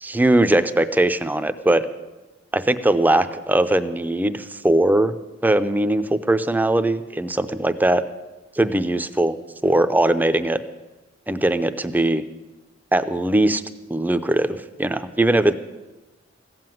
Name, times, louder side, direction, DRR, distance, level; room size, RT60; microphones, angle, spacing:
voice 1, 0.0-1.9 2.5-5.1 5.4-8.0 8.6-9.4 9.6-10.6 11.3-12.2 12.9-13.6 13.9-15.5, right 1 dB, 10° right, 10 dB, 0.6 m, -20 dB
15.5 x 7.8 x 9.2 m, 1.1 s
head